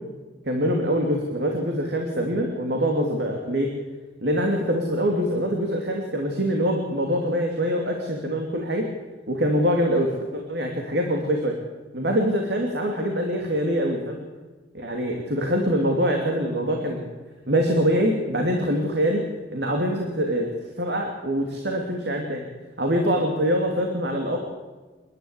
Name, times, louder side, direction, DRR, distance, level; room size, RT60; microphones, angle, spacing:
voice 1, 0.5-3.7 4.2-8.9 9.3-11.6 11.9-14.2 14.7-17.1 17.5-19.2 19.5-20.5 20.8-22.4 22.8-24.4, equal, 65° right, 2 dB, 2.8 m, -24 dB
29.0 x 11.0 x 8.2 m, 1.3 s
head